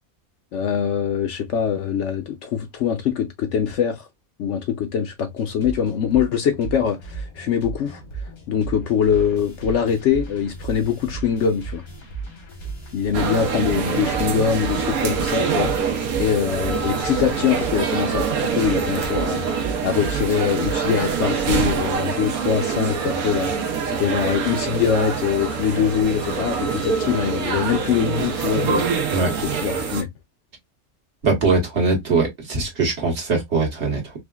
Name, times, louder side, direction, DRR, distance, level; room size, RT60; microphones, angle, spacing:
voice 1, 0.5-4.1 4.4-8.0 8.5-11.8 12.9-15.7 16.2-18.3 18.5-19.4 19.8-28.9 29.4-30.1, left 8 dB, 65° left, 0.8 m, -23 dB
sound 1, 5.4-20.9, right 4 dB, 90° left, 1.9 m, -35 dB
sound 2, 13.1-30.0, right 6 dB, 90° right, 1.2 m, -25 dB
voice 2, 29.1-29.4 31.2-34.1, right 3 dB, 55° right, 1.5 m, -21 dB
4.8 x 2.1 x 2.2 m
omnidirectional pair, 1.5 m